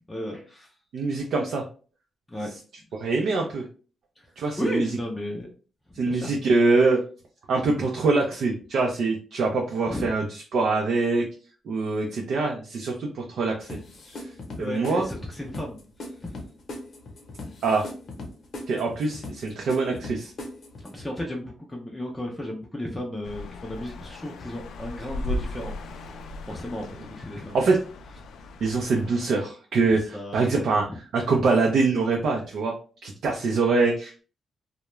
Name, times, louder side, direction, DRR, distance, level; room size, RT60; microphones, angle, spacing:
voice 1, 0.1-0.7 2.3-2.5 4.2-4.3 4.6-5.5 6.0-6.3 9.9-10.1 14.6-15.8 16.2-16.3 20.8-27.7 29.9-30.5, left 1 dB, 10° left, 0 dB, 0.4 m, -34 dB
voice 2, 0.9-1.6 2.9-3.6 4.4-4.9 6.0-7.0 7.5-10.2 10.5-11.2 11.7-13.8 14.6-15.0 17.6-17.9 18.7-20.3 27.5-27.8 28.6-30.8 31.1-32.7 33.0-34.2, right 3 dB, 70° right, 0 dB, 0.4 m, -24 dB
sound 1, 13.7-21.1, left 2 dB, 55° left, 0.7 m, -40 dB
sound 2, 23.2-29.1, left 1 dB, 80° left, 0.3 m, -37 dB
2.3 x 2.1 x 3.0 m, 0.38 s
cardioid pair, 125°, 0 cm